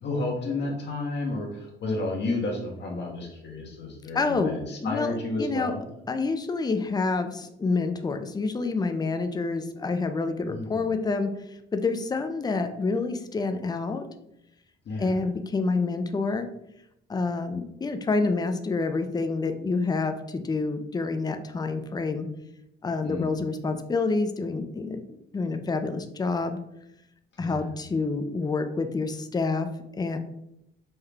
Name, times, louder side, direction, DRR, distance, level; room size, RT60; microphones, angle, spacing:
voice 1, 0.0-5.8 10.5-10.8 14.9-15.1 23.0-23.3 27.4-27.7, left 2 dB, 60° left, -1 dB, 1.0 m, -31 dB
voice 2, 4.1-5.7 6.1-11.3 11.7-14.0 15.0-16.5 17.1-22.3 22.8-26.6 27.4-30.2, left 3 dB, 20° left, 8 dB, 0.4 m, -28 dB
5.5 x 2.2 x 3.3 m, 0.81 s
cardioid pair, 90°, 20 cm